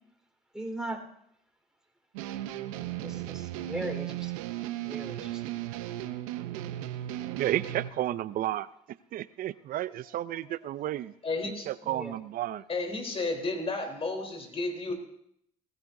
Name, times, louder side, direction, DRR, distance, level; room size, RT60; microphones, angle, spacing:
voice 1, 0.5-1.0 3.0-4.3 4.8-5.4 11.8-12.2, right 1 dB, 5° right, 2 dB, 4.1 m, -38 dB
sound 1, 2.1-7.9, right 14 dB, 85° right, 0.8 m, -36 dB
voice 2, 7.4-8.7 9.1-11.1 11.7-12.6, right 13 dB, 55° right, 17 dB, 0.5 m, -32 dB
voice 3, 11.2-11.7 12.7-14.9, left 3 dB, 35° left, 4 dB, 3.7 m, -32 dB
20.0 x 15.0 x 2.7 m, 0.70 s
supercardioid pair, 70°, 17 cm